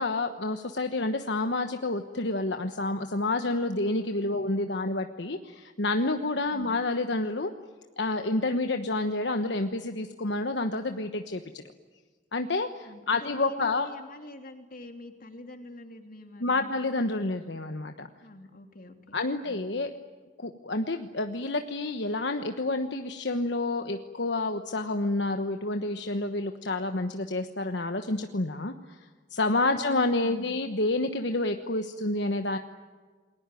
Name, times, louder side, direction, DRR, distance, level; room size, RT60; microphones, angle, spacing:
voice 1, 0.0-7.5 8.0-11.6 12.3-13.9 16.4-18.1 19.1-19.9 20.4-29.0 29.3-32.6, left 2 dB, 70° left, 6 dB, 1.2 m, -29 dB
voice 2, 12.8-16.7 18.2-19.2 19.4-19.7 29.7-30.7, left 1 dB, 50° left, 5 dB, 3.0 m, -46 dB
29.0 x 21.5 x 9.2 m, 1.4 s
head